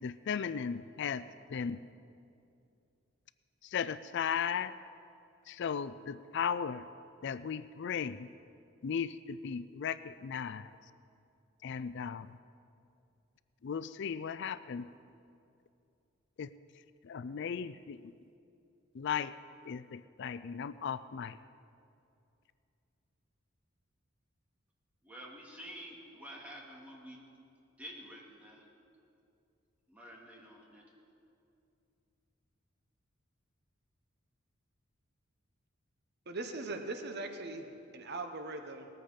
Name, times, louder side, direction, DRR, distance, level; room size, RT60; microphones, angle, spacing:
voice 1, 0.0-1.8 3.6-4.7 5.5-6.9 7.2-8.3 8.8-10.8 11.6-12.4 13.6-14.9 16.4-16.5 17.0-18.1 18.9-19.3 19.6-21.4, left 7 dB, 60° left, 15 dB, 0.4 m, -36 dB
voice 2, 25.0-27.2 27.8-28.7 29.9-30.8, equal, 5° right, -3 dB, 2.5 m, -49 dB
voice 3, 36.3-38.9, right 2 dB, 55° right, 6 dB, 1.0 m, -40 dB
19.5 x 14.0 x 5.2 m, 2.6 s
head